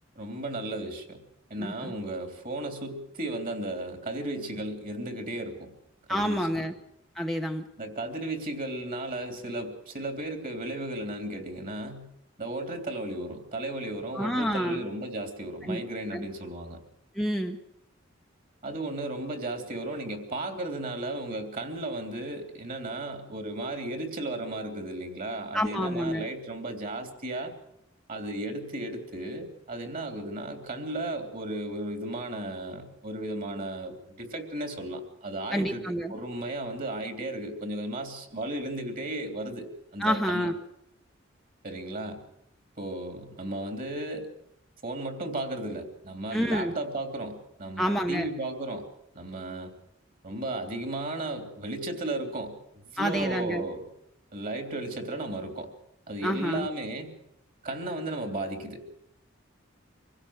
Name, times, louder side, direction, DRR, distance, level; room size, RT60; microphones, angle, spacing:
voice 1, 0.1-1.2 1.5-5.7 6.1-6.7 7.8-12.1 12.4-16.8 18.6-27.5 28.1-40.5 41.6-42.2 42.8-44.3 44.8-48.9 49.1-49.7 50.2-52.5 52.9-53.8 54.3-55.7 56.1-57.1 57.6-58.9, right 1 dB, 45° right, 5 dB, 3.4 m, -35 dB
voice 2, 1.6-1.9 6.1-6.7 7.2-7.6 14.1-14.8 15.7-15.8 16.1-16.2 17.2-17.6 25.5-26.3 35.5-36.1 40.0-40.6 46.3-46.8 47.8-48.3 53.0-53.7 56.2-56.7, equal, ahead, 2 dB, 0.9 m, -28 dB
25.0 x 16.5 x 6.4 m, 0.79 s
head